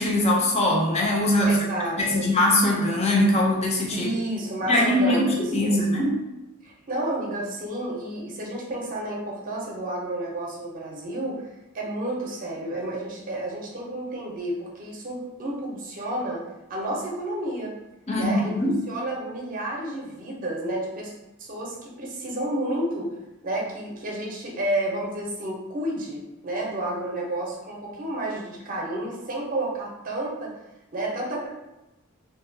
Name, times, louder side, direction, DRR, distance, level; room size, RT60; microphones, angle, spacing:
voice 1, 0.0-1.6 2.0-4.1 4.7-6.2 18.1-18.8, left 1 dB, 30° left, -1 dB, 0.5 m, -22 dB
voice 2, 1.4-2.3 3.9-5.8 6.6-11.4 11.7-16.4 16.7-17.7 18.2-21.1 21.4-23.1 23.4-30.5 30.9-31.5, right 1 dB, 40° right, -2 dB, 0.6 m, -31 dB
2.7 x 2.2 x 2.5 m, 0.99 s
head